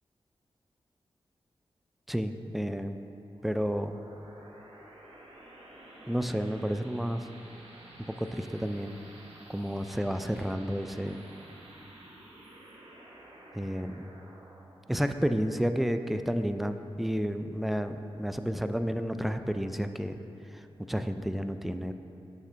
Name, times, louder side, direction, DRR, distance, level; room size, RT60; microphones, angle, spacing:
voice 1, 2.1-3.0 3.4-3.9 6.1-7.3 8.1-9.0 9.5-11.2 13.5-14.1 14.9-20.2 20.5-20.6 20.9-21.9, equal, ahead, 8 dB, 0.3 m, -31 dB
sound 1, 3.3-16.4, right 1 dB, 85° right, 0.9 m, -52 dB
7.2 x 6.5 x 3.3 m, 2.9 s
cardioid pair, 55°, 10 cm